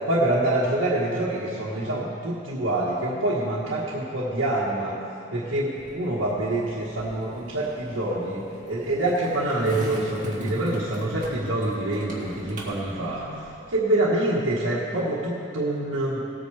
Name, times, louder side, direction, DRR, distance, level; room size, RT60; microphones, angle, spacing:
voice 1, 0.1-5.0 5.3-13.3 13.7-16.2, right 1 dB, 85° right, -7 dB, 1.5 m, -26 dB
Skateboard, 5.8-13.8, right 1 dB, 40° right, 2.0 m, -41 dB
18.5 x 9.1 x 3.4 m, 2.7 s
head